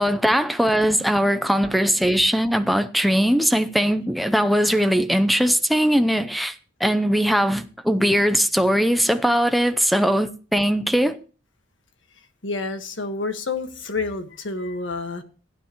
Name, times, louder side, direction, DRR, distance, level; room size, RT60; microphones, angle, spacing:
voice 1, 0.0-6.5 6.8-11.2, equal, ahead, 0.6 m, -20 dB
voice 2, 12.4-15.2, left 3 dB, 65° left, 1.5 m, -29 dB
15.5 x 9.5 x 3.0 m
head